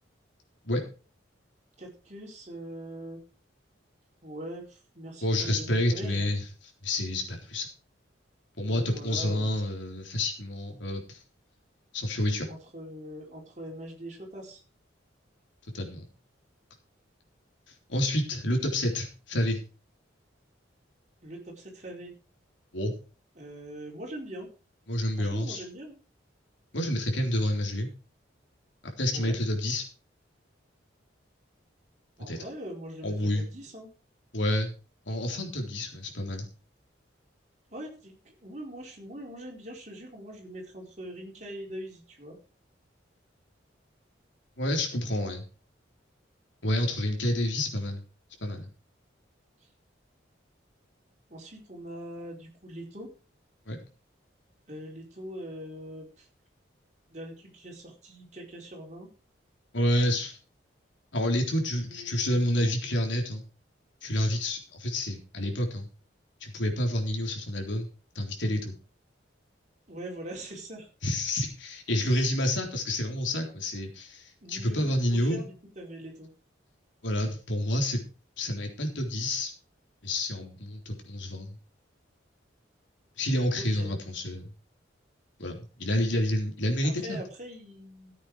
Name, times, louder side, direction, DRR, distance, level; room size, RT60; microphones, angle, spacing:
voice 1, 1.8-3.2 4.2-6.3 8.6-9.6 12.5-14.6 21.2-22.1 23.4-24.5 25.2-26.0 29.1-29.4 32.2-33.9 37.7-42.4 49.6-49.7 51.3-53.1 54.7-56.3 57.1-59.1 61.8-62.4 69.9-70.9 71.9-72.4 74.4-74.8 75.1-76.3 83.6-83.9 86.8-88.1, right 1 dB, 40° right, -1 dB, 4.4 m, -42 dB
voice 2, 5.2-6.4 6.8-7.7 8.6-11.2 11.9-12.5 15.7-16.0 17.7-19.6 22.7-22.9 24.9-25.6 26.7-27.9 29.0-29.8 32.3-32.4 33.0-33.4 34.3-34.7 35.1-36.5 44.6-45.4 46.6-48.0 48.4-48.7 53.7-53.8 59.7-60.4 61.1-63.4 64.0-65.9 66.4-67.9 68.2-68.7 71.0-75.4 77.0-78.0 78.4-79.5 80.0-81.5 83.2-84.5 85.4-87.2, left 1 dB, 75° left, 2 dB, 3.8 m, -29 dB
14.5 x 8.5 x 4.9 m, 0.35 s
head